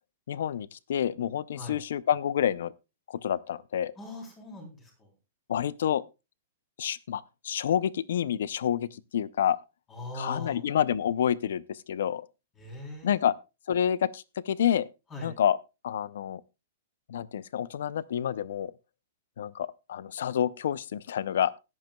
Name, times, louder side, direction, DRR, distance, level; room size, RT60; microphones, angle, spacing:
voice 1, 0.3-2.7 3.1-3.9 5.5-6.0 6.8-9.6 10.2-12.3 13.0-13.3 13.7-14.9 15.2-15.6 15.8-16.4 17.1-18.7 19.4-21.5, left 9 dB, 70° left, 0.5 m, -28 dB
voice 2, 4.0-5.1 9.9-10.6 12.6-13.3 15.1-15.3, left 2 dB, 15° left, 3.4 m, -41 dB
16.5 x 10.5 x 2.2 m
hypercardioid pair, 170°, 0 cm